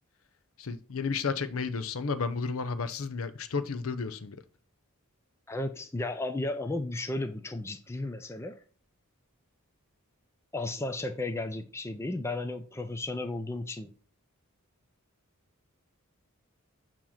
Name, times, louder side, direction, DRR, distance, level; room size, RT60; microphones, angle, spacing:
voice 1, 0.6-4.4, left 5 dB, 75° left, 0.6 m, -32 dB
voice 2, 5.5-8.6 10.5-13.9, left 2 dB, 10° left, 0.4 m, -34 dB
7.1 x 2.9 x 5.7 m
head